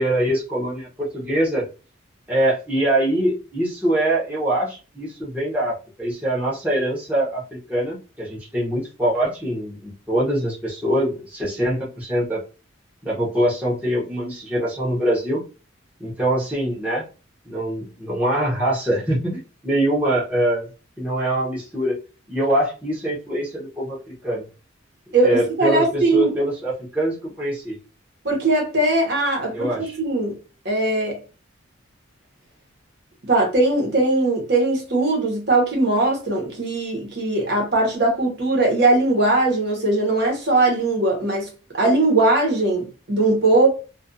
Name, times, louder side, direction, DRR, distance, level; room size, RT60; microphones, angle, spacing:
voice 1, 0.0-1.6 2.3-12.4 13.0-15.4 16.0-17.0 17.5-20.7 21.0-22.0 22.3-24.0 24.2-24.4 25.2-27.8 29.5-30.0, right 1 dB, 5° right, 0.8 m, -23 dB
voice 2, 25.1-26.3 28.2-30.4 30.6-31.2 33.3-41.5 41.7-43.7, right 2 dB, 55° right, 0.9 m, -20 dB
2.4 x 2.3 x 2.5 m
head